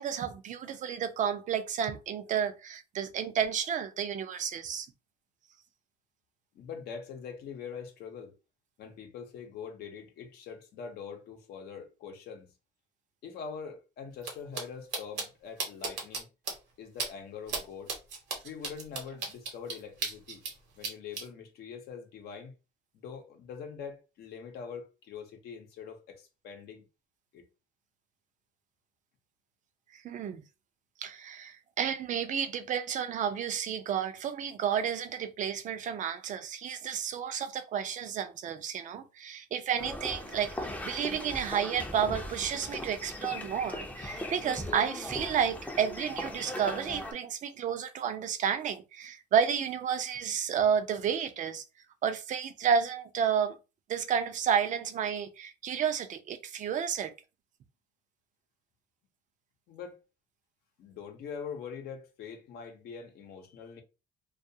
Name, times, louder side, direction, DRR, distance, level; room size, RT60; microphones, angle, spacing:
voice 1, 0.0-4.9 29.9-30.4 31.0-51.6 52.0-53.6 53.9-57.1, right 8 dB, 50° right, 0.5 m, -31 dB
voice 2, 6.5-8.3 8.8-12.5 13.2-16.3 16.8-18.0 18.4-20.5 20.8-22.5 22.9-26.8 27.3-27.4 59.7-60.0 60.8-63.8, left 6 dB, 70° left, 0.7 m, -43 dB
sound 1, 14.2-14.3 14.5-14.6 14.9-15.2 15.6-16.2 16.5-16.6 17.0-17.1 17.5-17.6 17.9-20.5 20.8-21.2, right 4 dB, 85° right, 0.9 m, -34 dB
sound 2, 39.8-47.1, left 1 dB, 10° left, 0.5 m, -39 dB
2.3 x 2.3 x 2.7 m
cardioid pair, 110°, 17 cm